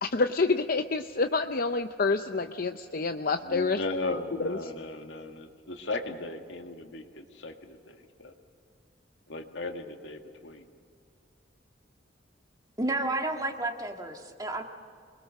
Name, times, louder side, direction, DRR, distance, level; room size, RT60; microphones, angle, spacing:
voice 1, 0.0-3.8 4.4-4.6, left 3 dB, 50° left, 7 dB, 0.6 m, -27 dB
voice 2, 3.4-8.3 9.3-10.7, left 2 dB, 75° left, 4 dB, 2.0 m, -37 dB
voice 3, 12.8-14.6, right 2 dB, 20° right, 4 dB, 1.7 m, -31 dB
27.5 x 21.5 x 6.5 m, 2.2 s
head